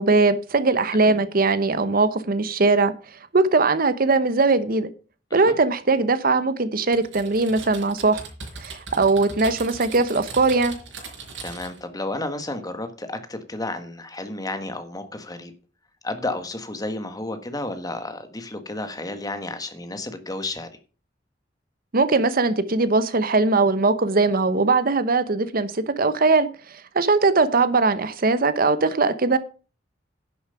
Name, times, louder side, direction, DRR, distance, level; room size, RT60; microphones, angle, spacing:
voice 1, 0.0-4.9 5.3-8.2 8.6-10.7 21.9-29.4, right 3 dB, 50° right, 0.9 m, -20 dB
Typing, 6.9-11.8, right 4 dB, 85° right, 4.9 m, -39 dB
voice 2, 11.4-15.5 16.0-20.7, left 2 dB, 20° left, 1.5 m, -32 dB
10.5 x 7.3 x 5.7 m
head